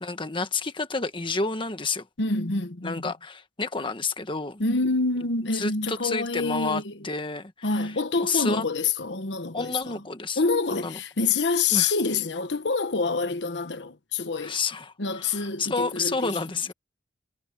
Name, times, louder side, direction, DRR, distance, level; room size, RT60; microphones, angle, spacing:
voice 1, 0.0-2.0 2.8-4.6 5.5-7.9 8.2-8.6 9.5-10.4 10.7-11.0 11.7-11.9 14.4-16.7, left 4 dB, 30° left, 1.5 m, -30 dB
voice 2, 2.2-3.1 4.6-7.1 7.6-10.0 10.4-14.6 15.0-16.4, left 4 dB, 90° left, 1.2 m, -27 dB
head